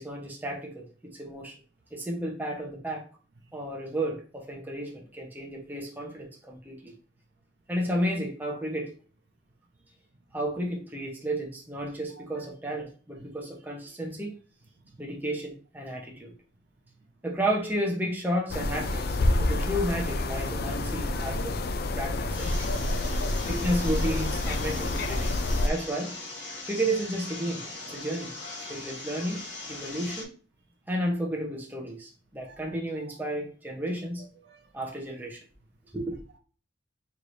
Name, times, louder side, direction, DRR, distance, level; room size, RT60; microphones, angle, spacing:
voice 1, 0.0-1.5 1.9-3.0 3.5-6.9 7.7-8.9 10.3-14.3 15.0-16.4 17.2-21.6 22.0-22.6 23.4-25.4 25.6-26.1 26.7-28.3 28.7-29.4 29.7-30.3 30.9-34.2 34.7-35.4 35.9-36.1, right 1 dB, 10° right, 0.8 m, -32 dB
voice 2, 12.2-12.5 13.2-13.3 32.5-33.1 34.2-34.7, right 4 dB, 60° right, 0.6 m, -53 dB
sound 1, 18.5-25.7, left 2 dB, 55° left, 0.4 m, -28 dB
sound 2, 22.3-30.2, left 2 dB, 75° left, 1.1 m, -40 dB
4.6 x 3.2 x 2.6 m
head